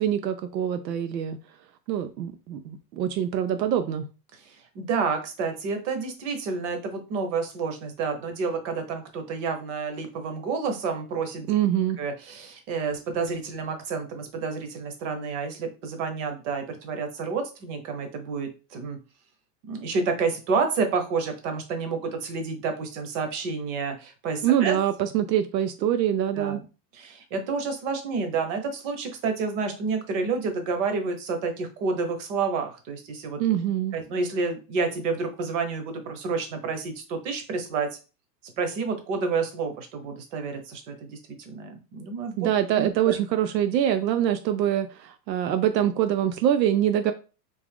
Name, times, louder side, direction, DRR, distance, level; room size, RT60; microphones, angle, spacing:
voice 1, 0.0-1.4 1.9-4.0 11.5-12.0 24.4-26.6 33.4-34.0 42.4-47.1, right 10 dB, 90° right, 9 dB, 0.6 m, -24 dB
voice 2, 4.3-11.5 12.0-19.0 19.7-24.8 26.3-26.6 26.9-33.4 33.9-37.9 38.6-41.2 41.5-42.4 42.8-43.2, right 4 dB, 50° right, 6 dB, 1.0 m, -29 dB
3.6 x 2.4 x 3.5 m, 0.33 s
supercardioid pair, 140°, 49 cm